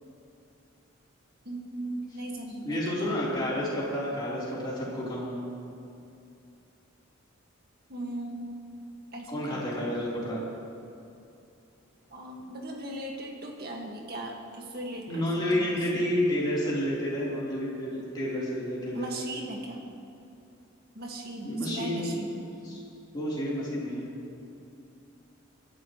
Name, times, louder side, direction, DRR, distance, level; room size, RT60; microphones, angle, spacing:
voice 1, 1.4-3.2 7.9-8.5 9.1-9.9 12.1-15.8 18.9-19.8 20.9-22.4, right 1 dB, 45° right, 0 dB, 1.8 m, -38 dB
voice 2, 2.6-5.4 9.3-10.4 15.1-19.1 21.4-22.2 22.6-22.8 23.1-24.1, equal, 20° left, -8 dB, 3.7 m, -30 dB
23.5 x 11.5 x 3.1 m, 2.7 s
head